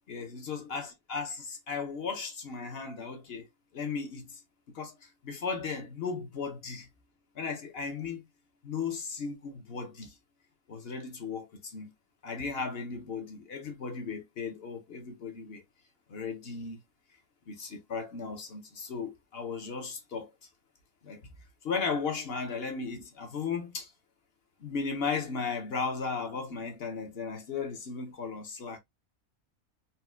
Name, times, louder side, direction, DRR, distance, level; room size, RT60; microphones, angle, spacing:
voice 1, 0.1-3.5 3.7-4.4 4.7-6.9 7.3-8.3 8.6-10.1 10.7-11.9 12.2-15.6 16.1-16.8 17.5-20.3 21.0-21.3 21.6-23.9 24.6-28.8, left 5 dB, 55° left, 0.7 m, -36 dB
4.2 x 2.2 x 2.2 m
omnidirectional pair, 1.6 m